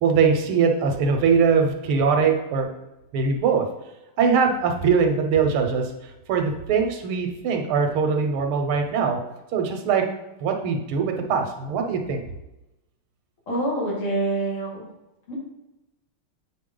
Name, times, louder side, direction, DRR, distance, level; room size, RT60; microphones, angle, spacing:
voice 1, 0.0-2.7 3.1-3.7 4.2-9.2 9.5-10.0 10.4-12.2, right 5 dB, 80° right, 4 dB, 1.7 m, -22 dB
voice 2, 13.5-14.8 15.3-15.4, right 2 dB, 85° left, -5 dB, 3.2 m, -26 dB
8.3 x 4.1 x 3.8 m, 0.96 s
omnidirectional pair, 2.3 m